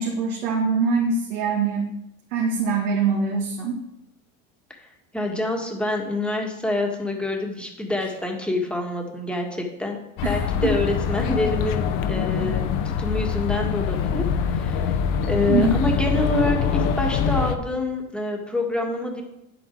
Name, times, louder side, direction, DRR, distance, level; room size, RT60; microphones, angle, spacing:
voice 1, 0.0-1.9 2.3-3.8 10.6-10.7 15.5-15.8, right 4 dB, 70° right, -2 dB, 2.1 m, -23 dB
voice 2, 5.1-10.0 10.2-15.0 15.3-19.2, left 2 dB, ahead, 1 dB, 1.6 m, -27 dB
sound 1, 10.2-17.6, left 7 dB, 50° left, 1.0 m, -24 dB
9.9 x 8.2 x 4.5 m, 0.86 s
supercardioid pair, 140°, 40 cm